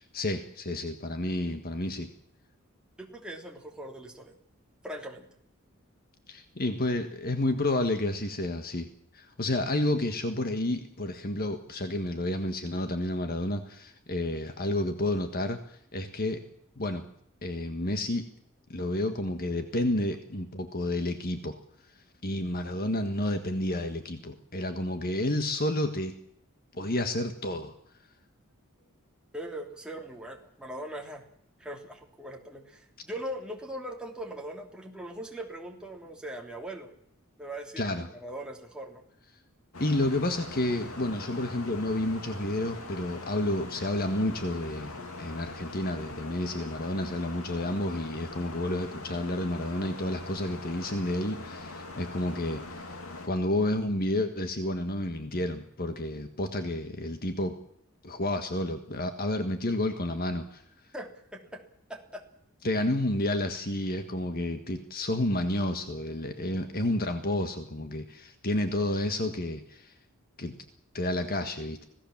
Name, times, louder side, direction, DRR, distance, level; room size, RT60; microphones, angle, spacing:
voice 1, 0.1-2.1 6.3-8.9 9.1-16.4 16.8-17.0 17.4-18.2 18.7-21.6 22.2-26.1 26.7-27.7 37.8-38.1 39.8-52.9 53.2-57.6 58.0-60.6 62.6-69.9 70.4-70.5 70.9-71.8, left 1 dB, 45° left, 7 dB, 1.6 m, -30 dB
voice 2, 3.0-4.4 4.8-5.3 29.3-31.2 31.6-36.9 37.4-39.0 60.9-61.6 61.9-62.2, right 1 dB, 5° right, 1 dB, 3.2 m, -40 dB
sound 1, 39.7-53.3, left 2 dB, 75° left, 2.9 m, -42 dB
26.0 x 17.0 x 7.4 m, 0.71 s
head